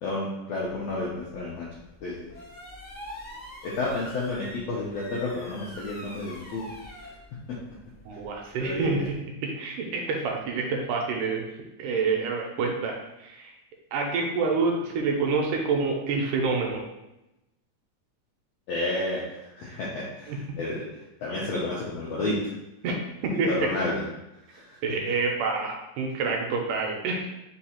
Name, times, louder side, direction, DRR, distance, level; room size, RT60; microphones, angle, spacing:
voice 1, 0.0-1.7 2.0-2.3 3.6-6.7 8.6-9.1 18.7-19.2 19.6-20.8 21.2-22.5 23.2-24.0 24.5-24.7, left 2 dB, 80° left, -5 dB, 1.5 m, -31 dB
sound 1, 0.6-9.2, left 1 dB, 60° left, 0.5 m, -46 dB
voice 2, 8.1-9.2 9.4-11.4 11.8-13.5 13.9-16.8 20.3-20.4 22.8-23.5 24.8-27.3, right 4 dB, 80° right, 1 dB, 2.0 m, -27 dB
5.2 x 2.4 x 4.3 m, 0.91 s
omnidirectional pair, 3.9 m